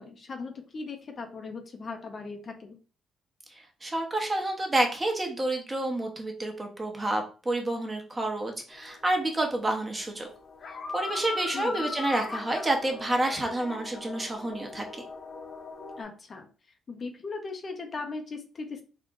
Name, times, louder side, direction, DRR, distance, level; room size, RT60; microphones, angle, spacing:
voice 1, 0.0-2.8 11.5-11.9 16.0-16.5 16.9-18.8, left 4 dB, 45° left, 5 dB, 0.7 m, -38 dB
voice 2, 3.8-10.3 10.9-14.8, right 1 dB, 20° right, 3 dB, 1.1 m, -29 dB
sound 1, 8.7-9.6 9.8-16.0, left 4 dB, 65° left, 1.0 m, -39 dB
3.7 x 2.4 x 3.7 m, 0.35 s
cardioid pair, 85°, 0 cm